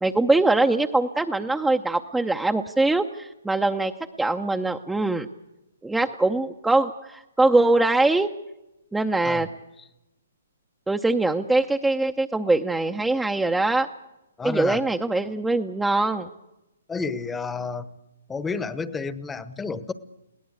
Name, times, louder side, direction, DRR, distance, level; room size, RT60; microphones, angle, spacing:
voice 1, 0.0-3.9 4.2-5.3 5.8-8.3 8.9-9.5 10.9-13.9 14.4-16.3, right 2 dB, 5° right, 4 dB, 0.7 m, -22 dB
voice 2, 14.4-14.8 16.9-17.9 18.3-19.9, left 4 dB, 10° left, 15 dB, 1.0 m, -30 dB
21.5 x 17.5 x 8.3 m, 0.94 s
hypercardioid pair, 140°, 0 cm